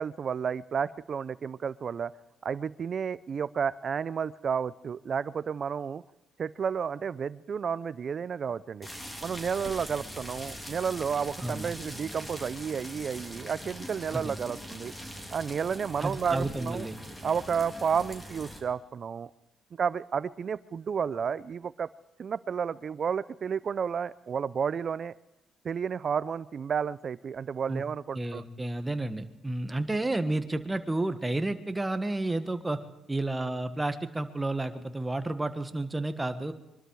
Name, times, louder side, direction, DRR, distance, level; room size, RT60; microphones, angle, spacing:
voice 1, 0.0-2.1 2.4-6.0 6.4-8.9 9.2-14.9 15.3-16.9 17.2-19.3 19.7-21.9 22.2-25.1 25.6-28.4, right 7 dB, 50° right, 17 dB, 0.7 m, -31 dB
sound 1, 8.8-18.6, equal, 15° left, 3.7 m, -42 dB
voice 2, 16.0-17.0 27.7-27.8 28.1-32.8 33.1-36.5, right 2 dB, 15° right, 9 dB, 1.6 m, -31 dB
24.0 x 12.5 x 4.8 m, 0.97 s
cardioid pair, 90°, 0 cm